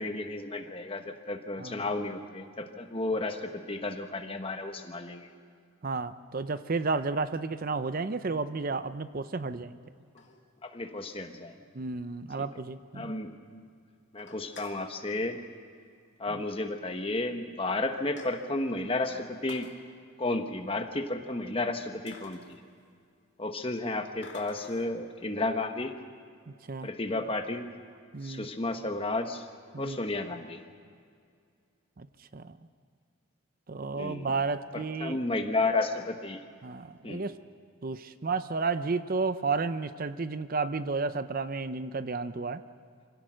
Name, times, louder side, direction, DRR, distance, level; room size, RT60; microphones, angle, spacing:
voice 1, 0.0-5.3 10.6-11.5 12.9-13.7 14.1-15.4 16.2-19.7 20.2-22.4 23.4-25.9 26.8-27.7 28.2-29.4 29.8-30.6 33.9-34.3 34.7-36.4 37.0-37.3, left 2 dB, 25° left, 6 dB, 1.2 m, -32 dB
voice 2, 5.8-9.8 11.7-13.1 16.3-16.4 26.7-26.9 28.1-28.5 29.7-30.0 32.0-32.1 32.3-32.6 33.7-35.2 36.6-37.4 37.8-42.6, right 4 dB, 40° right, 13 dB, 0.6 m, -32 dB
sound 1, 7.9-8.1 8.8-8.9 9.8-10.8 11.3-11.4 11.6-11.7 12.0-12.1 12.4-12.5 12.9-13.3 13.7-13.8 14.1-14.9 16.0-16.2 16.5-16.6 17.3-17.4 17.7-18.7 19.3-19.7 21.5-21.6 22.1-23.1 24.2-24.9, left 4 dB, 55° left, 2.4 m, -50 dB
24.5 x 17.0 x 6.3 m, 2.2 s
head